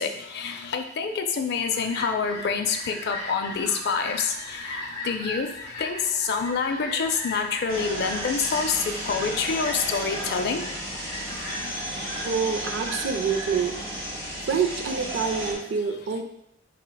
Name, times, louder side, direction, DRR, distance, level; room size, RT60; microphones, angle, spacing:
voice 1, 0.0-5.5 5.7-10.7 11.3-11.7, left 5 dB, 55° left, 5 dB, 0.4 m, -27 dB
Fowl, 1.3-15.3, left 1 dB, 25° left, 1.0 m, -39 dB
sound 1, 7.7-15.5, equal, 30° right, 1.0 m, -33 dB
voice 2, 12.2-13.8 14.5-16.2, right 6 dB, 70° right, 5 dB, 0.4 m, -26 dB
4.3 x 3.3 x 2.2 m, 0.79 s
head